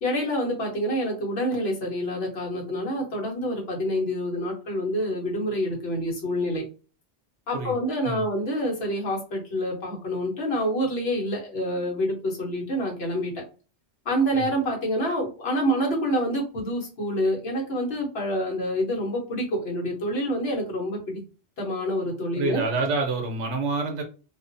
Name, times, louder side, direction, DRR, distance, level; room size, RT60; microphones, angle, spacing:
voice 1, 0.0-6.6 7.5-13.3 14.0-21.2 21.6-22.6, equal, 60° left, -1 dB, 1.2 m, -27 dB
voice 2, 22.4-24.0, right 3 dB, 75° right, 2 dB, 1.0 m, -27 dB
2.5 x 2.4 x 2.5 m, 0.35 s
omnidirectional pair, 1.2 m